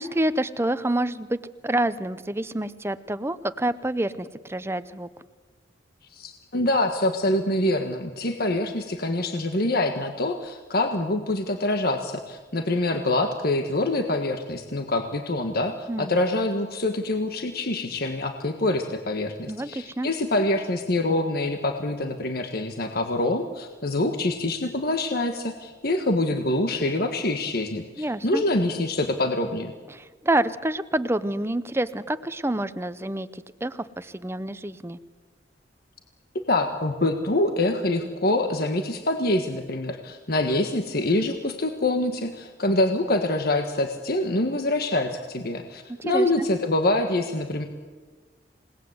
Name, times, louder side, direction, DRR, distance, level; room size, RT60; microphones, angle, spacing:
voice 1, 0.0-1.4 1.6-5.1 15.9-16.2 19.5-20.1 28.0-28.4 29.9-35.0 46.0-46.5, right 1 dB, 15° right, 13 dB, 0.7 m, -28 dB
voice 2, 6.1-29.7 36.5-47.6, left 2 dB, 55° left, 5 dB, 1.5 m, -25 dB
28.5 x 19.0 x 8.1 m, 1.4 s
head